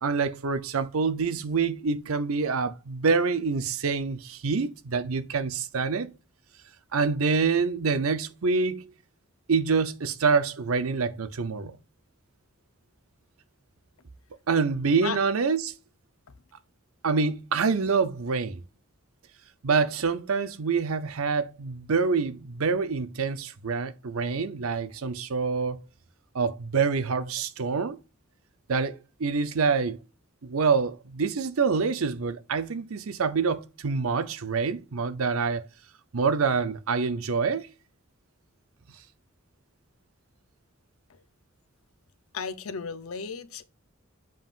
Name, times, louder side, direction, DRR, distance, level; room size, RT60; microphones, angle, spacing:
voice 1, 0.0-6.1 6.9-8.9 9.5-11.8 14.5-15.7 17.0-18.6 19.6-25.8 26.3-28.0 28.7-30.0 30.4-35.6 36.1-37.7, right 5 dB, 90° right, 0.7 m, -26 dB
voice 2, 42.3-43.6, left 6 dB, 85° left, 0.7 m, -34 dB
7.6 x 5.5 x 2.5 m
head